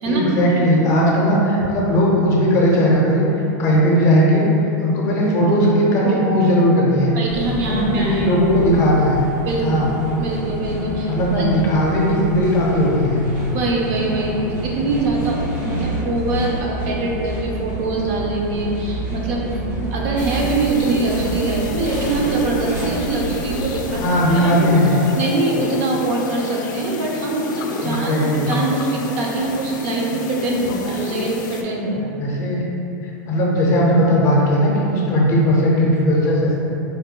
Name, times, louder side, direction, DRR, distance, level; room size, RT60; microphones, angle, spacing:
voice 1, 0.0-3.2 3.6-4.5 4.8-7.1 7.6-9.2 9.6-9.9 11.1-13.2 23.9-24.9 27.8-28.5 32.2-32.6 33.3-36.6, equal, 30° left, -4 dB, 0.6 m, -17 dB
voice 2, 7.1-8.3 9.4-9.8 10.2-11.1 11.4-11.5 13.5-24.0 24.3-24.6 25.1-32.1, right 2 dB, 50° right, -2 dB, 0.6 m, -23 dB
sound 1, 7.3-24.1, right 1 dB, 85° right, 1.2 m, -28 dB
sound 2, 20.2-31.6, left 5 dB, 90° left, 0.4 m, -32 dB
4.1 x 2.1 x 3.7 m, 2.9 s
supercardioid pair, 155°, 10 cm